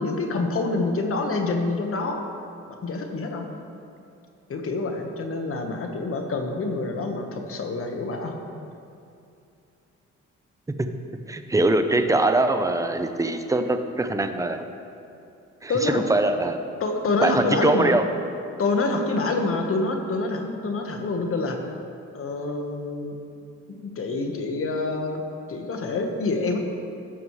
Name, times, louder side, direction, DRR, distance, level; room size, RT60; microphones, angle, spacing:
voice 1, 0.0-2.3 2.8-3.5 4.5-8.4 15.7-16.0 16.8-18.0 18.6-21.6 22.1-23.1 23.7-25.2 25.5-26.6, left 3 dB, 45° left, 3 dB, 1.3 m, -26 dB
voice 2, 11.3-14.7 15.6-16.6 17.2-18.0, right 2 dB, 10° right, 7 dB, 0.7 m, -22 dB
16.5 x 7.0 x 3.2 m, 2.6 s
cardioid pair, 90°, 30 cm